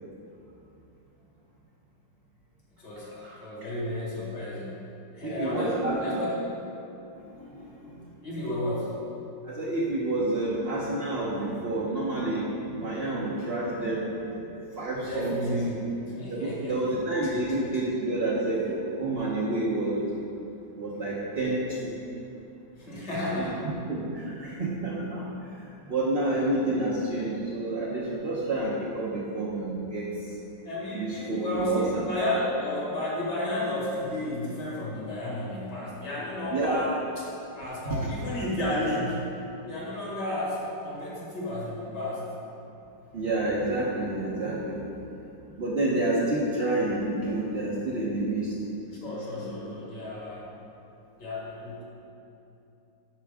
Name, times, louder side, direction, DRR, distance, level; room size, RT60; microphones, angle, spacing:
voice 1, 2.8-4.7 5.1-6.5 8.2-9.0 15.1-16.9 22.8-23.6 30.6-37.3 37.5-39.3 39.7-42.2 49.0-50.5 51.2-51.8, left 1 dB, 65° left, -6 dB, 2.4 m, -32 dB
voice 2, 5.2-6.2 7.1-8.1 9.4-14.4 14.8-15.7 16.3-20.1 20.8-21.9 23.3-30.3 30.9-31.8 36.5-36.8 37.8-38.0 43.1-44.9 45.6-48.5 49.3-49.7, right 2 dB, 45° right, -6 dB, 0.9 m, -29 dB
9.3 x 6.1 x 3.5 m, 2.9 s
omnidirectional pair, 2.0 m